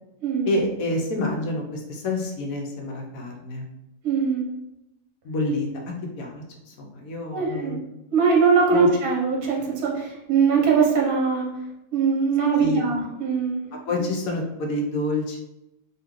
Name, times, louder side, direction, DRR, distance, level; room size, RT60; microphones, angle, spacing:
voice 1, 0.5-3.6 5.2-7.8 8.7-8.9 12.6-12.9 13.9-15.4, left 2 dB, 70° left, 1 dB, 1.1 m, -28 dB
voice 2, 4.0-4.5 7.3-7.7 8.1-11.5 11.9-13.7, right 5 dB, 65° right, -1 dB, 1.3 m, -21 dB
3.7 x 2.8 x 3.0 m, 0.91 s
omnidirectional pair, 1.7 m